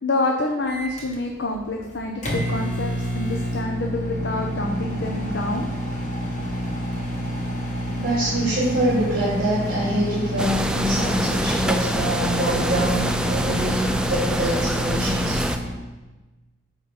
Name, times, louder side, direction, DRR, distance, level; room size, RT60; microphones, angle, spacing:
voice 1, 0.0-5.7, left 2 dB, 60° left, 1 dB, 0.8 m, -27 dB
Microwave oven, 0.7-15.8, equal, 35° left, 1.8 m, -28 dB
voice 2, 8.0-15.4, right 1 dB, 45° right, -8 dB, 3.1 m, -25 dB
sound 1, 10.4-15.6, right 1 dB, 5° right, 0.4 m, -26 dB
9.8 x 4.1 x 7.0 m, 1.1 s
head